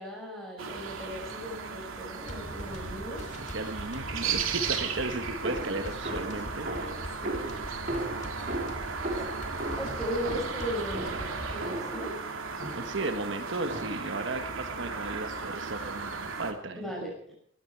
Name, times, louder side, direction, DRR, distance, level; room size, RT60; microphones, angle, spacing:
voice 1, 0.0-3.2 7.2-7.4 9.1-9.3 9.8-12.1 16.7-17.3, equal, ahead, -2 dB, 6.0 m, -37 dB
sound 1, 0.6-16.5, right 5 dB, 90° right, 2.7 m, -36 dB
sound 2, 2.2-11.7, left 1 dB, 35° left, 2.5 m, -42 dB
voice 2, 3.4-6.7 12.8-16.9, right 2 dB, 65° right, 7 dB, 1.3 m, -35 dB
sound 3, 5.4-12.1 12.6-13.1 13.7-14.2, right 1 dB, 45° right, 3.4 m, -37 dB
19.0 x 14.5 x 4.6 m, 0.64 s
head